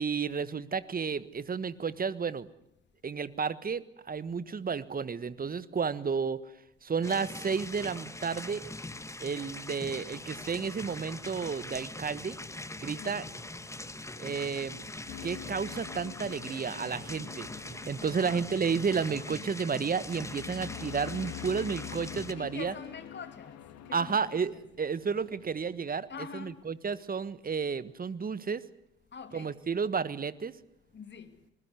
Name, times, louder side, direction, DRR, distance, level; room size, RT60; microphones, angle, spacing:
voice 1, 0.0-2.5 3.0-6.4 6.8-8.7 9.2-12.4 12.8-13.2 14.2-14.8 15.2-22.7 23.9-24.5 24.8-26.1 26.4-28.6 29.3-30.6, right 5 dB, 30° right, 1.4 m, -32 dB
sound 1, 7.0-22.3, left 2 dB, 10° left, 1.7 m, -42 dB
sound 2, 10.0-26.2, left 6 dB, 85° left, 2.6 m, -60 dB
voice 2, 12.9-13.3 18.0-18.5 20.5-20.7 22.4-23.6 23.9-24.7 26.1-26.6 29.1-29.6 30.9-31.4, left 6 dB, 35° left, 2.9 m, -45 dB
sound 3, 15.1-24.2, left 12 dB, 55° left, 1.9 m, -46 dB
26.0 x 21.0 x 8.2 m
hypercardioid pair, 55°, 31 cm